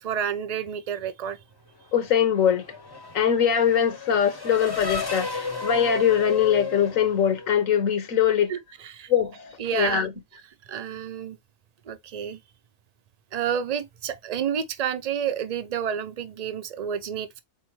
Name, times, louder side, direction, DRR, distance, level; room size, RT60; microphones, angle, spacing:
voice 1, 0.0-1.4 8.5-8.6 8.8-9.1 9.6-10.1 10.7-11.4 11.9-12.4 13.3-17.4, right 8 dB, 50° right, 0.5 m, -29 dB
voice 2, 1.9-2.7 3.1-8.5 9.1-10.1, left 8 dB, 80° left, 1.4 m, -22 dB
Race car auto racing / Accelerating revving vroom, 1.9-7.9, left 3 dB, 20° left, 0.7 m, -34 dB
4.3 x 3.5 x 3.0 m
omnidirectional pair, 1.4 m